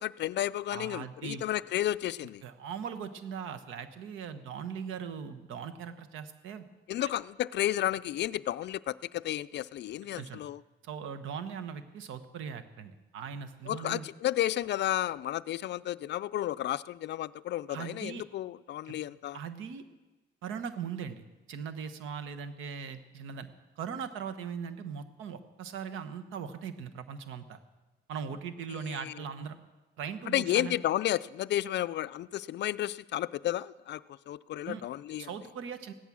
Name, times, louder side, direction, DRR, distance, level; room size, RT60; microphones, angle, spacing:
voice 1, 0.0-2.4 6.9-10.6 13.7-19.4 28.9-29.1 30.3-34.0 34.3-35.3, left 13 dB, 60° left, 16 dB, 0.4 m, -32 dB
voice 2, 0.7-1.4 2.4-6.7 7.0-7.1 10.2-10.4 10.8-14.1 17.7-18.2 18.8-18.9 19.3-19.8 20.4-23.5 23.8-27.6 28.1-29.6 30.0-30.8 34.6-34.8 35.2-35.9, right 7 dB, 90° right, 10 dB, 1.2 m, -40 dB
16.0 x 12.0 x 6.2 m, 1.2 s
cardioid pair, 90°, 20 cm